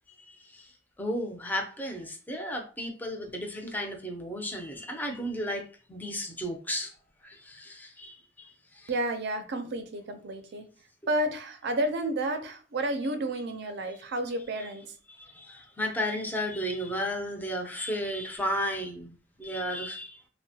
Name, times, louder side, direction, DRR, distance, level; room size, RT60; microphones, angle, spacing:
voice 1, 0.2-0.7 1.0-6.9 7.2-8.9 15.1-20.2, equal, 10° left, 0.5 m, -34 dB
voice 2, 8.9-10.7 11.1-14.9, right 1 dB, 65° right, 0.5 m, -31 dB
2.8 x 2.1 x 2.7 m
head